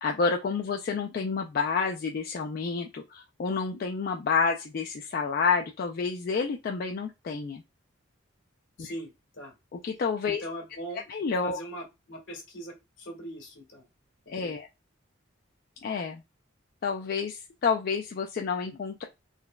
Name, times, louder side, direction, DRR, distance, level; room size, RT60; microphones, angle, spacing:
voice 1, 0.0-7.6 8.8-8.9 9.7-10.4 11.1-11.6 14.3-14.7 15.8-16.2 16.8-19.0, left 5 dB, 45° left, 2 dB, 0.3 m, -29 dB
voice 2, 8.8-9.5 10.3-11.0 11.4-13.8 14.2-14.6, right 1 dB, 70° left, 0 dB, 1.5 m, -41 dB
3.9 x 2.1 x 2.2 m, 0.24 s
head